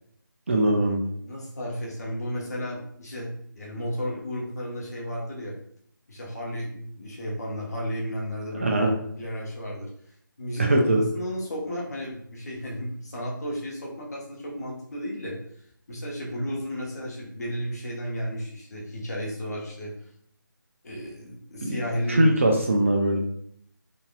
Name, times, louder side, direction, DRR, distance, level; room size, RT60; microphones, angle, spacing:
voice 1, 0.5-1.0 8.6-8.9 10.6-11.1 21.6-21.8 22.1-23.2, right 1 dB, 35° right, 1 dB, 0.4 m, -21 dB
voice 2, 1.3-3.3 3.5-5.5 6.1-8.9 9.1-9.9 10.4-10.7 11.1-15.4 15.9-19.9 20.8-22.3, equal, 50° left, -3 dB, 1.0 m, -33 dB
3.9 x 2.7 x 2.3 m, 0.67 s
figure-of-eight pair, 160°, 12 cm